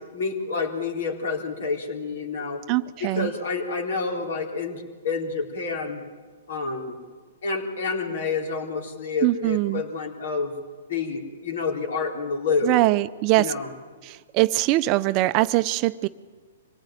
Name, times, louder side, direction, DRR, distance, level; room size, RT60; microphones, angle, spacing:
voice 1, 0.1-2.6 3.0-6.0 6.5-7.0 7.4-10.5 10.9-12.8 13.4-13.7, left 4 dB, 70° left, 2 dB, 4.0 m, -28 dB
voice 2, 2.7-3.3 9.2-9.8 12.6-13.5 14.0-16.1, right 18 dB, 35° right, 14 dB, 0.6 m, -22 dB
25.0 x 18.0 x 9.1 m, 1.5 s
hypercardioid pair, 125°, 0 cm